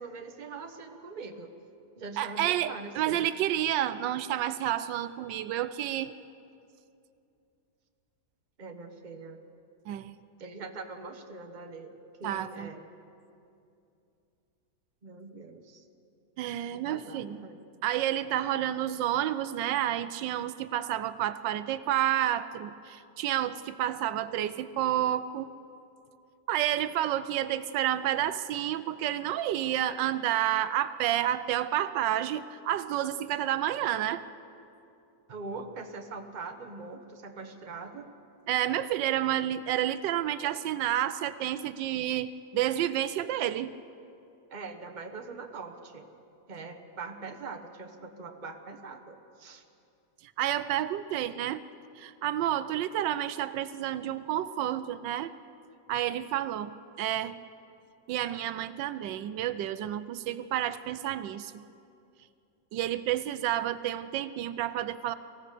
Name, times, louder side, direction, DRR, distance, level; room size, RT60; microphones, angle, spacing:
voice 1, 0.0-1.5 2.0-3.2 8.6-9.4 10.4-11.9 12.2-12.8 15.0-15.8 16.7-17.6 35.3-38.1 44.5-46.1 46.5-49.6, right 4 dB, 30° right, 5 dB, 1.2 m, -42 dB
voice 2, 2.2-6.1 9.9-10.2 12.2-12.7 16.4-17.4 17.8-25.5 26.5-34.2 38.5-43.7 50.4-51.6 52.0-55.3 55.9-56.7 57.0-57.4 58.1-61.6 62.7-65.1, right 12 dB, 85° right, 14 dB, 1.3 m, -30 dB
24.0 x 16.0 x 6.7 m, 2.6 s
omnidirectional pair, 1.9 m